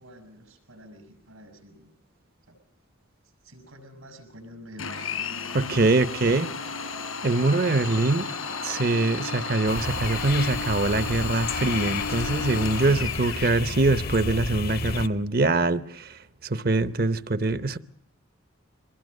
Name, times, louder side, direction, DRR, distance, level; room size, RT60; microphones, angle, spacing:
voice 1, 0.0-1.9 2.5-2.6 3.4-5.2 12.9-13.1, equal, 90° right, 6.1 m, -46 dB
Domestic sounds home sounds, 4.8-13.5, left 4 dB, 85° left, 4.1 m, -33 dB
voice 2, 5.5-6.5 7.2-8.3 8.6-16.1 16.5-17.8, right 2 dB, 45° right, 0.8 m, -23 dB
sound 1, 9.7-15.1, left 4 dB, 45° left, 0.8 m, -32 dB
24.0 x 20.5 x 6.6 m
head